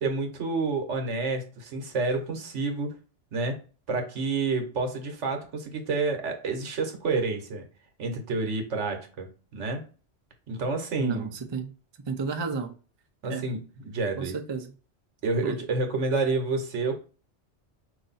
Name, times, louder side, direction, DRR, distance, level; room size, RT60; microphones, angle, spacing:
voice 1, 0.0-3.0 3.3-3.6 3.9-7.7 8.0-9.8 10.5-11.3 13.2-14.4 15.2-17.0, right 3 dB, 80° right, 1.3 m, -29 dB
voice 2, 11.0-11.7 12.1-12.7 13.3-13.4 14.2-14.7 15.4-15.5, right 5 dB, 35° right, 0.5 m, -31 dB
4.9 x 2.7 x 4.0 m
omnidirectional pair, 1.2 m